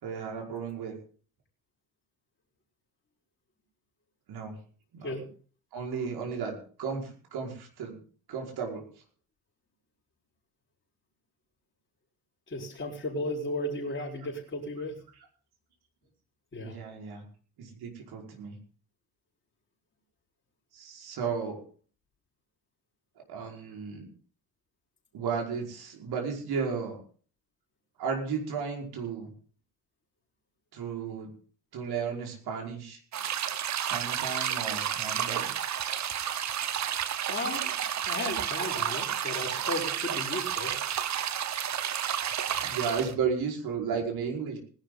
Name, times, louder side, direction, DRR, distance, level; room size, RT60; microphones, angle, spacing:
voice 1, 0.0-1.0 4.3-4.5 4.9-5.1 5.7-8.0 8.3-8.8 16.6-17.2 17.6-18.6 20.7-21.6 23.3-24.1 25.1-27.0 28.0-29.3 30.7-31.3 31.7-33.0 33.7-35.5 42.5-44.6, right 6 dB, 55° right, 1 dB, 5.3 m, -34 dB
voice 2, 12.5-15.0 16.5-16.8 37.3-40.7, left 1 dB, 25° left, -4 dB, 5.0 m, -35 dB
sound 1, 33.1-43.1, right 9 dB, 35° right, 1.1 m, -31 dB
19.5 x 11.5 x 4.0 m, 0.43 s
figure-of-eight pair, 55°, 46 cm